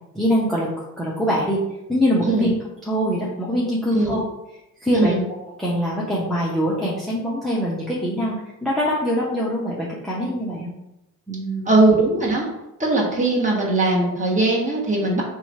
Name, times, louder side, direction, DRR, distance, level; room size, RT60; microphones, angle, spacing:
voice 1, 0.1-0.7 1.0-1.6 1.9-2.5 2.9-4.2 4.8-10.7 11.3-11.7, equal, ahead, -6 dB, 0.8 m, -23 dB
voice 2, 11.6-12.5 12.8-15.2, right 2 dB, 15° right, -3 dB, 1.3 m, -19 dB
2.9 x 2.4 x 4.1 m, 0.89 s
hypercardioid pair, 50°, 45 cm